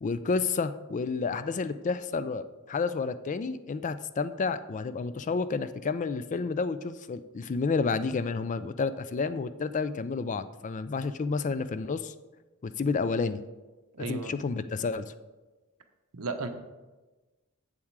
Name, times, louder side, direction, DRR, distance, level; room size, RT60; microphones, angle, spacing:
voice 1, 0.0-12.1 12.6-13.4 14.0-15.1, left 4 dB, 35° left, 13 dB, 0.3 m, -30 dB
voice 2, 13.9-14.3 16.1-16.5, right 4 dB, 80° right, 7 dB, 0.9 m, -34 dB
7.7 x 7.2 x 4.7 m, 1.2 s
head